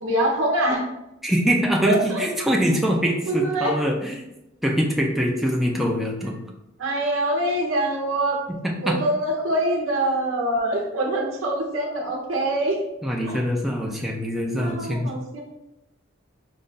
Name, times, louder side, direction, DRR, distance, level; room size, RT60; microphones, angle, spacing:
voice 1, 0.0-0.8 1.9-2.2 3.3-3.8 6.8-8.5 8.8-12.8 13.3-13.4 14.6-15.4, right 1 dB, 85° right, -1 dB, 0.8 m, -24 dB
voice 2, 1.2-4.2 4.6-6.4 8.5-9.0 13.0-15.1, equal, ahead, -2 dB, 0.5 m, -23 dB
5.1 x 2.4 x 4.0 m, 0.90 s
head